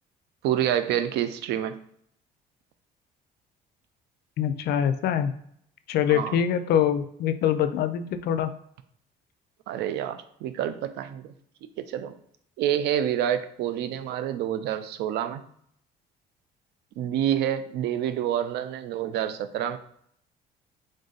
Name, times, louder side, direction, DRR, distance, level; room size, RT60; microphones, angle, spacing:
voice 1, 0.4-1.7 6.1-6.4 9.7-11.3 11.8-12.2 12.6-15.4 17.0-19.8, right 10 dB, 80° right, 11 dB, 0.4 m, -28 dB
voice 2, 4.4-5.4 5.9-8.5, left 9 dB, 70° left, 11 dB, 0.4 m, -24 dB
3.7 x 2.6 x 3.9 m, 0.68 s
cardioid pair, 110°, 17 cm